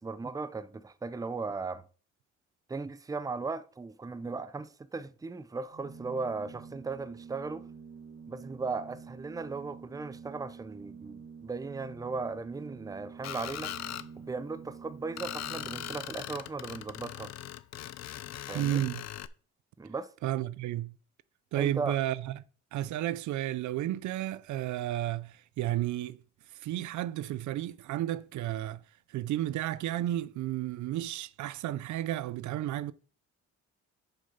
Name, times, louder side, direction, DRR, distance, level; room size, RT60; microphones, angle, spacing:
voice 1, 0.0-1.8 2.7-7.7 8.3-17.3 18.5-18.8 19.8-20.1 21.6-22.0, right 4 dB, 10° right, 0.5 m, -37 dB
Organ, 5.6-16.4, right 6 dB, 45° right, 1.3 m, -48 dB
Screech, 13.2-14.1 15.2-19.3, left 12 dB, 60° left, 0.6 m, -40 dB
voice 2, 18.5-19.0 20.2-20.9 21.5-22.3 22.7-26.2 26.6-28.8 29.1-32.9, right 13 dB, 75° right, 0.5 m, -32 dB
7.2 x 5.3 x 5.5 m
cardioid pair, 90°, 30 cm